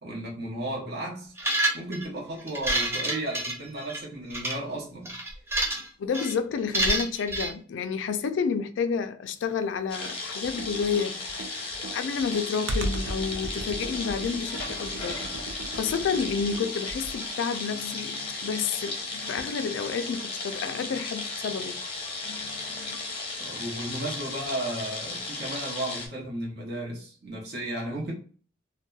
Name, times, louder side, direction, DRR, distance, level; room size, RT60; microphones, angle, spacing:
voice 1, 0.0-1.3 1.7-5.1 11.8-11.9 23.4-28.1, right 1 dB, 60° right, 0.8 m, -34 dB
sound 1, 1.4-2.0 2.5-4.0 4.3-4.5 5.1-5.9 6.1-6.3 6.7-7.5, right 1 dB, 15° right, 0.5 m, -27 dB
voice 2, 6.0-21.8 22.2-23.1, left 6 dB, 75° left, 0.3 m, -30 dB
sound 2, 9.9-26.1, left 3 dB, 30° left, 0.6 m, -35 dB
Computer keyboard, 10.4-17.3, right 1 dB, 85° right, 0.4 m, -36 dB
2.7 x 2.1 x 2.2 m
head